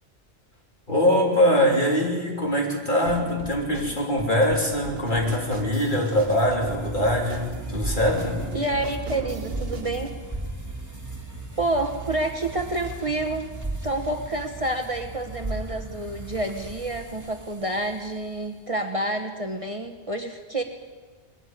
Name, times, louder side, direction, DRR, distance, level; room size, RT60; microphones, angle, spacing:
voice 1, 0.9-8.4, left 1 dB, 45° left, -1 dB, 3.7 m, -23 dB
sound 1, 3.1-10.2, right 3 dB, 60° right, 1.6 m, -38 dB
sound 2, 5.4-18.5, right 2 dB, 15° right, 2.4 m, -37 dB
voice 2, 8.5-10.1 11.6-13.5 13.8-20.6, right 1 dB, 30° right, 4 dB, 1.1 m, -28 dB
21.0 x 13.5 x 9.4 m, 1.4 s
omnidirectional pair, 1.1 m